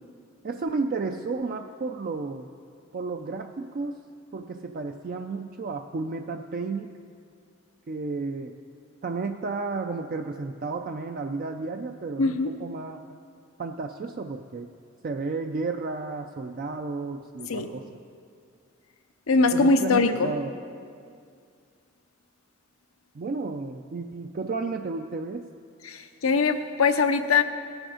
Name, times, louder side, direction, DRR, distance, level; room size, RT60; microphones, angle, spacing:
voice 1, 0.4-2.5 2.9-4.0 4.3-7.0 7.9-8.5 9.0-13.2 13.6-14.7 15.0-17.8 19.5-20.5 23.1-25.5, right 3 dB, 45° right, 5 dB, 0.4 m, -32 dB
voice 2, 12.2-12.5 17.5-17.6 19.3-20.3 25.8-27.4, left 4 dB, 90° left, 7 dB, 0.7 m, -22 dB
18.0 x 6.3 x 5.0 m, 2.3 s
head